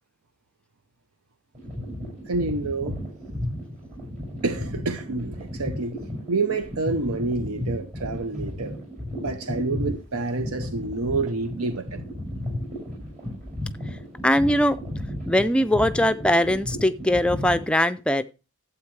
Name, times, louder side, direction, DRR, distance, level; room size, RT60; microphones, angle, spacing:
sound 1, 1.5-17.7, left 1 dB, 35° right, 6.3 m, -34 dB
voice 1, 2.3-3.0 4.4-6.0 6.3-8.8 9.2-12.0, right 3 dB, 80° right, 0.7 m, -28 dB
voice 2, 14.2-14.8 15.3-18.2, left 1 dB, 5° left, 0.4 m, -21 dB
12.0 x 8.1 x 3.2 m
head